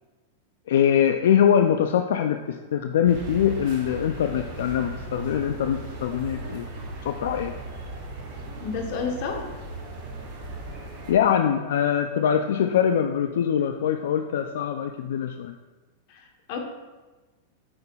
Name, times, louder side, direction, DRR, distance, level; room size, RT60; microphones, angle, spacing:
voice 1, 0.7-6.7 7.0-7.5 11.1-15.5, left 9 dB, 80° left, 6 dB, 0.3 m, -23 dB
sound 1, 3.1-11.1, right 2 dB, 50° right, 1.5 m, -37 dB
voice 2, 8.6-9.5 16.1-16.6, left 5 dB, 50° left, 3 dB, 1.0 m, -31 dB
7.7 x 5.7 x 2.3 m, 1.2 s
supercardioid pair, 150°, 0 cm